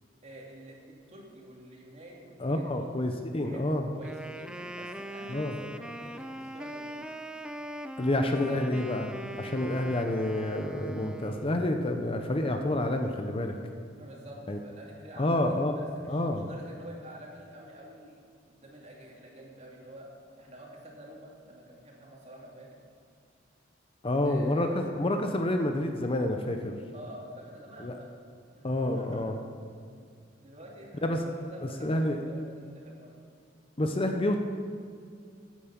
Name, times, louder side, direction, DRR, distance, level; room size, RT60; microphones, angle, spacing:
voice 1, 0.2-2.9 3.4-3.6 3.9-7.1 8.3-8.9 14.0-20.1 20.4-22.8 24.2-25.0 26.9-28.1 28.6-29.4 30.4-33.2, right 1 dB, 35° right, -2 dB, 2.6 m, -48 dB
voice 2, 2.4-3.9 5.3-5.5 8.0-9.1 9.4-13.5 14.5-14.6 15.2-15.8 16.1-16.5 24.0-26.7 27.8-27.9 28.6-29.3 31.0-31.2 31.8-32.2 33.8-34.4, left 1 dB, 30° left, 5 dB, 0.7 m, -28 dB
Wind instrument woodwind instrument, 4.0-11.7, right 1 dB, 5° right, 0.4 m, -41 dB
14.0 x 8.7 x 5.9 m, 2.3 s
head